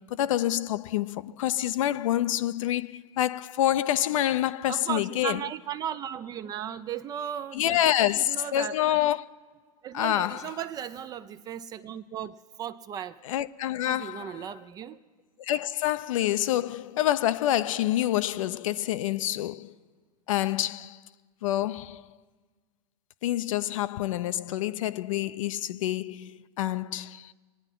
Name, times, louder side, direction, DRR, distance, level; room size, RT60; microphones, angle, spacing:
voice 1, 0.0-5.4 7.5-9.2 9.9-10.4 13.2-14.5 15.4-19.7 20.3-21.0 21.4-22.0 23.2-27.3, left 13 dB, 55° left, 0.5 m, -27 dB
voice 2, 4.7-7.9 8.2-9.0 9.8-13.2 13.9-15.0, right 9 dB, 20° right, 0.4 m, -36 dB
24.5 x 9.7 x 3.8 m
hypercardioid pair, 105°, 20 cm